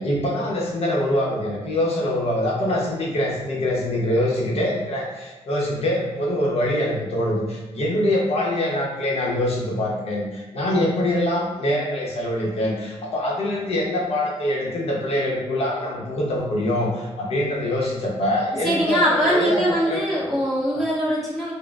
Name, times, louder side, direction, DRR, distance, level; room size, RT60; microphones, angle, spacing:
voice 1, 0.0-20.0 20.7-20.8, left 1 dB, 65° left, -3 dB, 0.9 m, -24 dB
voice 2, 18.6-21.5, equal, ahead, -10 dB, 1.4 m, -22 dB
5.0 x 2.2 x 2.4 m, 1.2 s
wide cardioid pair, 155°, 11 cm